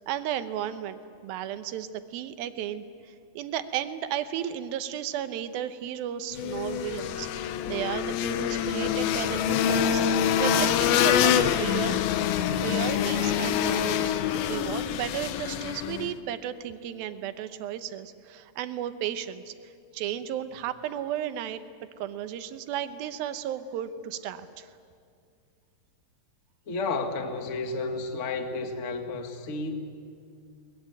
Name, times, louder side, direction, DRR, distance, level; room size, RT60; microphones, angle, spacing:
voice 1, 0.0-12.0 12.6-19.5 19.9-21.6 22.0-24.7, right 10 dB, 80° right, 10 dB, 2.7 m, -34 dB
sound 1, 6.3-16.1, left 9 dB, 85° left, 2.7 m, -26 dB
voice 2, 26.7-29.7, left 3 dB, 50° left, 5 dB, 0.9 m, -31 dB
22.5 x 20.5 x 9.1 m, 2.3 s
omnidirectional pair, 4.2 m